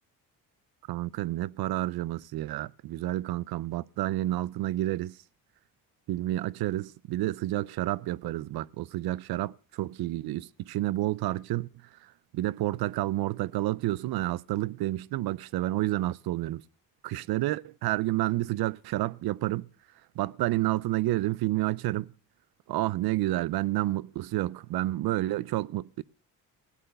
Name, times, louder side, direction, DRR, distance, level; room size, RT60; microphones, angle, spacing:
voice 1, 0.9-5.2 6.1-11.7 12.3-16.6 17.0-19.7 20.2-22.1 22.7-26.0, right 16 dB, 90° right, 0.6 m, -30 dB
17.0 x 9.2 x 6.7 m
cardioid pair, 175°, 36 cm